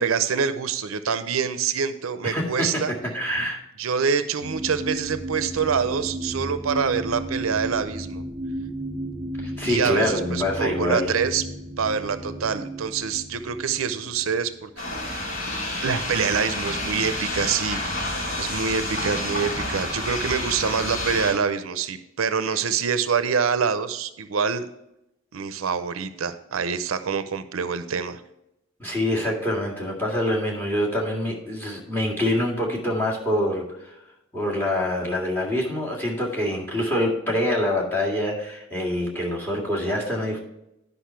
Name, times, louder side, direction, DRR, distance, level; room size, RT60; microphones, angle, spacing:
voice 1, 0.0-2.9 3.8-8.2 9.6-11.4 11.8-14.7 15.8-17.9 18.4-24.7 25.3-28.2, right 6 dB, 80° right, 11 dB, 0.6 m, -25 dB
voice 2, 2.2-2.7 3.1-3.6 9.4-11.1 22.5-22.6 28.8-33.9 34.3-40.4, left 1 dB, 10° left, -2 dB, 2.0 m, -25 dB
sound 1, 4.4-14.4 15.0-15.1, right 1 dB, 15° right, 0.6 m, -34 dB
sound 2, 14.8-21.3, left 1 dB, 80° left, 3.7 m, -29 dB
10.5 x 5.4 x 4.4 m, 0.86 s
head